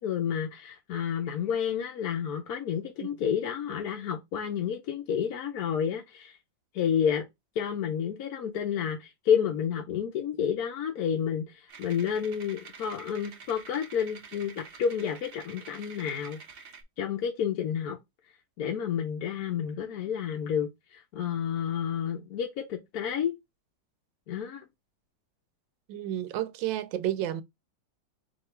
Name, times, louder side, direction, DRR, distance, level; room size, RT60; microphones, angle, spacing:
voice 1, 0.0-6.4 6.7-7.2 7.6-16.4 17.0-18.0 18.6-23.4 24.3-24.6, left 8 dB, 65° left, 1.0 m, -30 dB
sound 1, 11.7-16.8, right 5 dB, 65° right, 0.5 m, -48 dB
voice 2, 25.9-27.4, right 12 dB, 85° right, 1.3 m, -31 dB
4.3 x 2.8 x 4.4 m
omnidirectional pair, 2.0 m